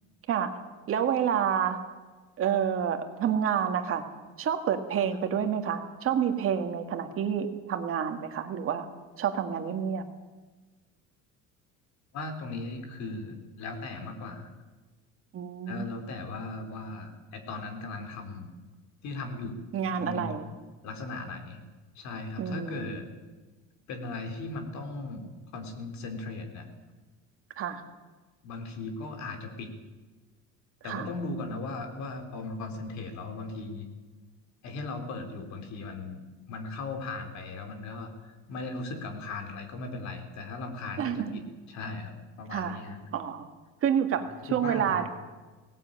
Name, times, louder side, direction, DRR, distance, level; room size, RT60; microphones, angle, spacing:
voice 1, 0.9-1.8 2.4-4.0 4.4-8.9 9.2-10.0 15.3-15.9 19.7-20.5 22.4-23.0 27.6-27.8 30.8-31.1 41.0-41.4 42.5-42.8 43.1-43.5 43.8-44.3 44.5-45.1, right 8 dB, 40° right, 6 dB, 2.0 m, -28 dB
voice 2, 12.1-14.5 15.7-18.5 19.0-19.6 19.9-20.3 20.8-21.6 22.0-23.1 23.9-26.7 28.4-29.7 30.8-33.9 34.6-41.4 41.7-43.0 44.2-45.0, left 3 dB, 55° left, 5 dB, 3.9 m, -38 dB
18.5 x 18.5 x 9.0 m, 1.3 s
cardioid pair, 165°, 34 cm